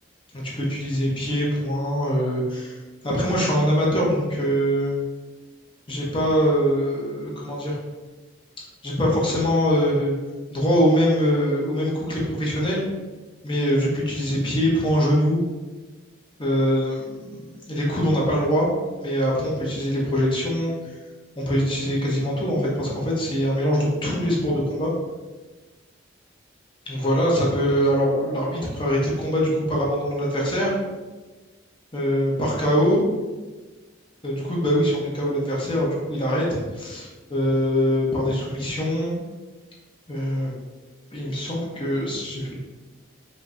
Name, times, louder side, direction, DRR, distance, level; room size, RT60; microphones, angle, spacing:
voice 1, 0.3-2.8 3.0-5.0 5.9-7.8 8.8-10.1 10.5-12.8 13.4-15.4 16.4-18.7 19.0-20.7 21.4-24.9 26.9-30.7 31.9-33.1 34.2-36.5 36.7-39.2 40.1-40.5 41.1-42.6, equal, 25° left, -4 dB, 0.9 m, -23 dB
5.2 x 2.7 x 2.6 m, 1.3 s
head